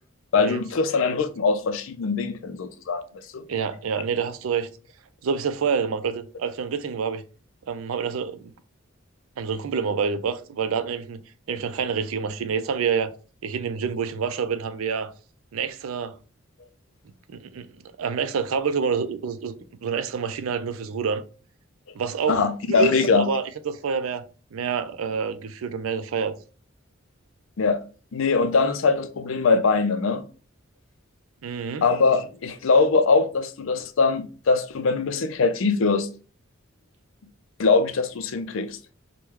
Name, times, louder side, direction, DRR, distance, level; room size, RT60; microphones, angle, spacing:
voice 1, 0.3-3.0 3.3-3.5 22.3-23.3 27.6-27.8 28.1-30.2 31.8-36.1 37.6-38.8, left 4 dB, 70° left, 0.4 m, -22 dB
voice 2, 3.5-4.7 5.2-7.2 7.7-8.5 9.4-11.2 11.5-13.1 13.4-15.1 15.5-16.2 17.3-17.7 18.0-19.5 19.8-21.2 21.9-24.2 24.5-26.3 31.4-31.8, right 6 dB, 85° right, 0.4 m, -27 dB
3.5 x 2.2 x 2.9 m
head